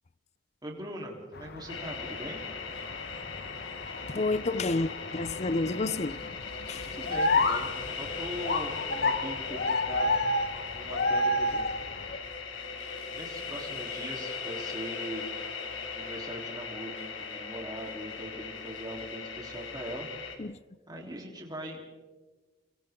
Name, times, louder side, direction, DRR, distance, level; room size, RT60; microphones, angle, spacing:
voice 1, 0.6-2.4 6.9-10.2 10.7-11.7 13.1-15.3 15.9-20.1 20.9-21.9, right 1 dB, 20° right, 3.8 m, -41 dB
sound 1, 1.3-12.2, left 2 dB, 55° left, 1.2 m, -31 dB
sound 2, 1.7-20.4, left 5 dB, 80° left, 3.0 m, -39 dB
voice 2, 4.1-6.2 6.7-6.9 20.4-20.6, left 2 dB, 35° left, 0.6 m, -30 dB
30.0 x 25.0 x 3.8 m
head